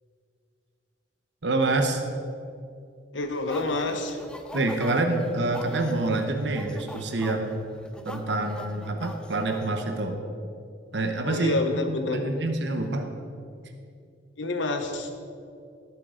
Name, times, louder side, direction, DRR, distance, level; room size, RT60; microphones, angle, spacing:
voice 1, 1.4-2.0 4.5-7.6 8.0-10.2 10.9-11.6 11.9-13.1, right 2 dB, 70° right, 4 dB, 1.0 m, -27 dB
voice 2, 3.1-4.2 11.2-12.3 14.4-15.1, left 2 dB, 90° left, 5 dB, 1.2 m, -28 dB
sound 1, 3.2-9.9, left 1 dB, 5° left, 0.7 m, -43 dB
17.0 x 7.6 x 3.8 m, 2.4 s
head